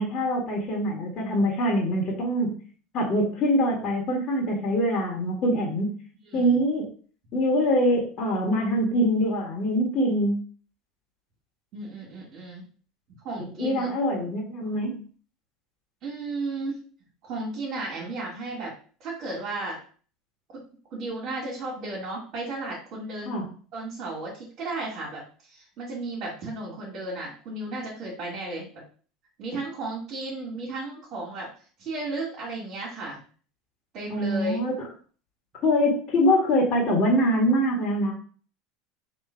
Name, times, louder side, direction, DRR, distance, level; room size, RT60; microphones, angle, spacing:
voice 1, 0.0-2.6 2.9-5.9 6.3-6.8 7.3-10.3 13.4-15.0 23.2-23.5 34.1-34.7 35.6-38.1, equal, 40° left, -2 dB, 1.6 m, -24 dB
voice 2, 6.3-6.6 11.7-12.6 13.2-13.9 16.0-16.8 17.2-18.7 19.0-19.8 20.5-20.6 20.9-23.3 23.7-28.7 29.4-31.5 31.8-33.2 33.9-34.6, right 2 dB, 50° right, -7 dB, 2.0 m, -34 dB
3.7 x 3.0 x 4.5 m, 0.42 s
supercardioid pair, 115°, 0 cm